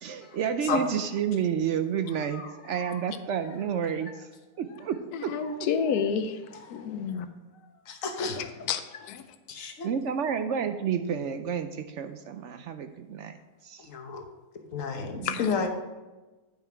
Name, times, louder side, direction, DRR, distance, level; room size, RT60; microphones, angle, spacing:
voice 1, 0.0-4.1 4.6-5.3 9.8-13.4 13.6-13.9 15.1-15.4, right 8 dB, 65° right, 8 dB, 0.7 m, -30 dB
voice 2, 5.1-7.3 8.4-9.2 15.2-15.5, left 6 dB, 85° left, 9 dB, 1.1 m, -30 dB
voice 3, 7.9-8.4 9.5-9.9 13.9-14.3 14.7-15.7, left 5 dB, 60° left, 5 dB, 1.3 m, -31 dB
9.3 x 5.5 x 4.6 m, 1.2 s
omnidirectional pair, 1.6 m